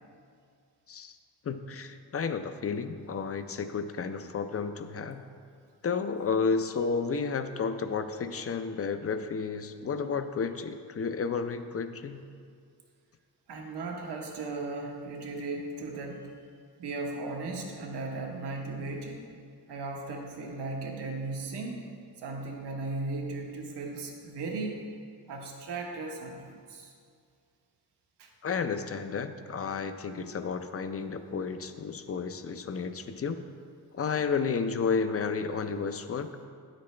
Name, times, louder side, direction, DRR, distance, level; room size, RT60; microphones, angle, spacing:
voice 1, 1.4-5.2 5.8-12.2 28.4-33.4 33.9-36.3, left 5 dB, 35° left, 9 dB, 0.5 m, -32 dB
voice 2, 13.5-16.3 16.8-19.2 19.7-21.8 22.2-24.8 25.3-26.9 28.2-28.3, right 3 dB, 85° right, 1 dB, 1.2 m, -36 dB
9.5 x 8.2 x 3.2 m, 2.2 s
cardioid pair, 95°, 40 cm